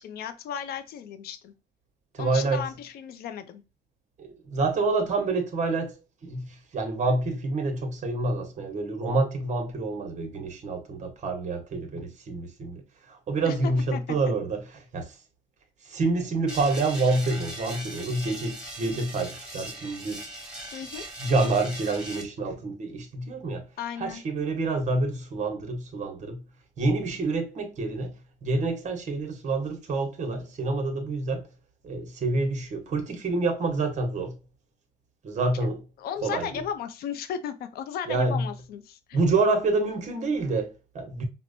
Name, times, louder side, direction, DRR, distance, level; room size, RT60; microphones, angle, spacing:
voice 1, 0.0-1.5 2.2-3.6 13.5-14.0 20.7-21.0 23.8-24.2 36.0-39.0, left 8 dB, 65° left, 0.5 m, -35 dB
voice 2, 2.1-2.7 4.2-12.8 13.1-15.1 15.8-20.3 21.2-23.7 24.0-26.4 26.8-31.5 31.8-34.4 35.2-35.8 36.2-36.6 38.1-38.5 39.1-41.2, right 3 dB, 45° right, 1.0 m, -27 dB
sound 1, 16.5-22.2, right 1 dB, 5° right, 1.2 m, -39 dB
4.3 x 2.1 x 2.5 m
cardioid pair, 110°, 17 cm